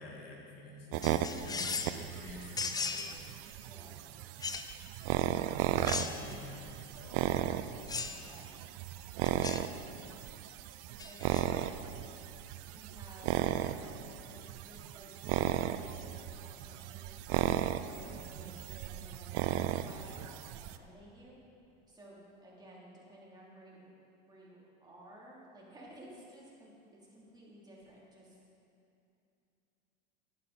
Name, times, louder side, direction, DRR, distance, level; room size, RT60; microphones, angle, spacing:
voice 1, 0.0-3.2 4.4-4.6 5.7-7.7, left 2 dB, 90° left, -2 dB, 2.3 m, -50 dB
sound 1, 0.9-20.8, right 12 dB, 55° right, 0.5 m, -36 dB
sound 2, 1.0-2.0 2.6-3.1 4.4-4.7 5.8-6.4 7.9-8.2 9.2-9.7 11.0-11.5, left 4 dB, 15° left, 0.5 m, -37 dB
voice 2, 3.6-4.0 8.1-8.5 11.0-11.7 12.7-17.5 18.0-21.4 21.9-23.9 24.3-26.7 27.1-28.4, right 1 dB, 15° right, -5 dB, 2.9 m, -55 dB
11.0 x 10.0 x 4.2 m, 2.7 s
supercardioid pair, 105°, 30 cm